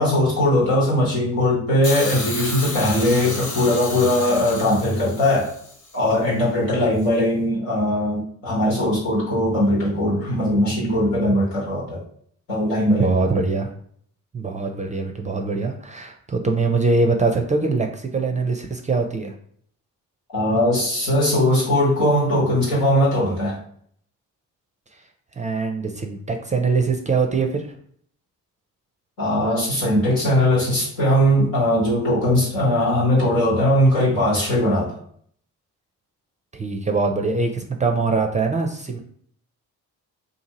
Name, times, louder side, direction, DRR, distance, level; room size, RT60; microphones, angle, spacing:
voice 1, 0.0-5.5 5.9-12.0 12.5-13.3 20.3-23.6 29.2-34.9, left 1 dB, 85° left, -6 dB, 1.3 m, -20 dB
Hiss, 1.8-6.0 7.0-7.1, left 2 dB, 40° left, 1.0 m, -32 dB
voice 2, 12.9-13.7 14.3-19.3 25.4-27.6 36.5-39.0, right 3 dB, 20° right, 4 dB, 0.4 m, -23 dB
2.7 x 2.5 x 2.8 m, 0.62 s
hypercardioid pair, 40°, 44 cm